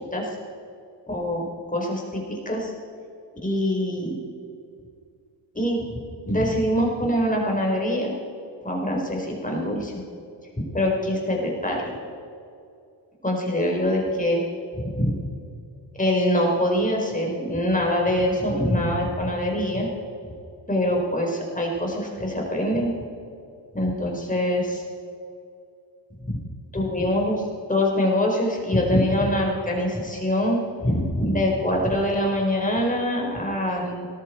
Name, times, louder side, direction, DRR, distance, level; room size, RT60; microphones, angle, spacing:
voice 1, 1.1-2.7 3.4-4.2 5.5-5.8 6.2-8.1 8.6-9.9 10.7-11.8 13.2-14.4 14.7-15.1 16.0-19.9 20.7-22.9 23.7-24.8 26.3-26.4 26.7-27.4 27.7-34.0, left 1 dB, 20° left, -1 dB, 4.7 m, -24 dB
17.5 x 13.5 x 4.6 m, 2.4 s
cardioid pair, 70°, 44 cm